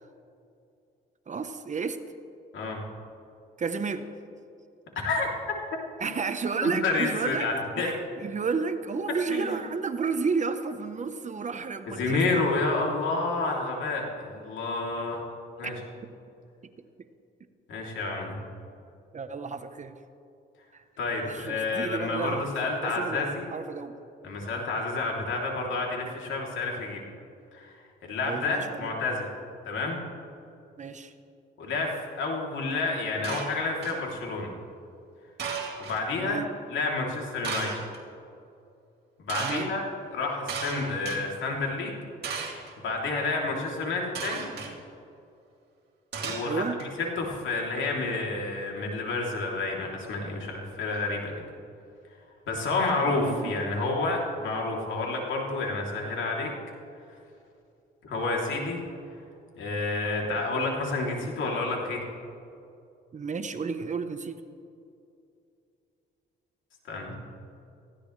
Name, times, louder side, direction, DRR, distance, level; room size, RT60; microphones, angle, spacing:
voice 1, 1.3-2.0 3.6-4.1 6.0-7.5 7.8-12.4 15.6-15.7 19.1-19.9 20.7-20.8 21.2-22.5 22.8-23.9 28.2-28.9 30.8-31.1 36.2-36.5 39.4-39.7 46.4-46.8 53.0-53.5 63.1-64.4, right 5 dB, 35° right, 9 dB, 1.0 m, -32 dB
voice 2, 6.6-7.9 9.3-9.6 11.9-15.2 15.6-15.7 17.7-18.3 21.0-23.5 24.2-27.0 27.5-29.3 29.6-30.0 31.6-31.9 32.2-34.5 35.8-36.4 36.7-37.7 39.2-39.8 40.1-42.0 42.8-44.5 46.2-51.5 52.5-56.5 58.0-58.8 59.6-62.0 66.9-67.1, left 3 dB, 75° left, -1 dB, 3.2 m, -29 dB
sound 1, 33.2-34.1 35.4-36.0 37.4-38.0 39.3-39.7 40.5-41.2 42.2-42.7 44.1-44.7 46.1-46.8, right 5 dB, 55° right, 2.7 m, -35 dB
19.0 x 15.0 x 3.3 m, 2.5 s
cardioid pair, 90°, 20 cm